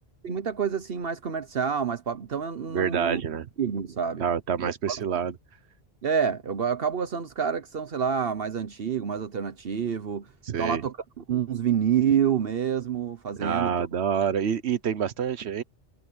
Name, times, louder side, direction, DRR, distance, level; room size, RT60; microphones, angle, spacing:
voice 1, 0.2-3.2 3.6-4.2 4.6-5.0 6.0-10.3 10.6-13.9, right 7 dB, 65° right, 1.2 m, -28 dB
voice 2, 2.7-3.5 4.2-5.3 10.4-10.8 13.4-15.6, right 8 dB, 90° right, 1.2 m, -27 dB
omnidirectional pair, 1.1 m